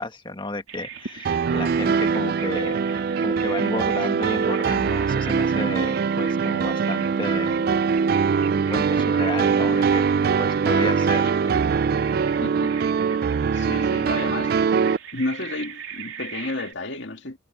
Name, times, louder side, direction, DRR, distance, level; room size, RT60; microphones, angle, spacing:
voice 1, 0.0-7.6 8.7-10.0 10.4-11.3, left 2 dB, 25° left, 1.6 m, -32 dB
Bird vocalization bird call bird song, 0.7-16.7, right 7 dB, 80° right, 3.2 m, -41 dB
sound 1, 1.2-15.0, right 6 dB, 50° right, 0.3 m, -22 dB
voice 2, 12.4-12.7 13.5-14.7 15.1-17.4, left 2 dB, 60° left, 2.2 m, -31 dB
head